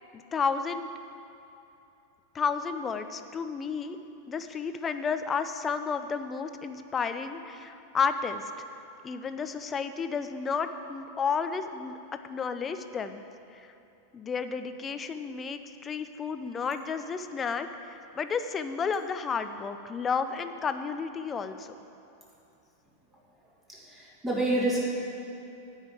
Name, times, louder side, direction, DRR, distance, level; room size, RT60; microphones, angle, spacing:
voice 1, 0.1-0.9 2.3-4.0 4.3-8.5 9.0-11.9 12.3-13.2 13.5-13.7 14.1-21.7, left 5 dB, 20° left, 9 dB, 0.5 m, -32 dB
voice 2, 23.7-24.8, right 1 dB, 10° right, -5 dB, 2.4 m, -28 dB
9.4 x 5.6 x 8.1 m, 2.8 s
figure-of-eight pair, 90°, 0 cm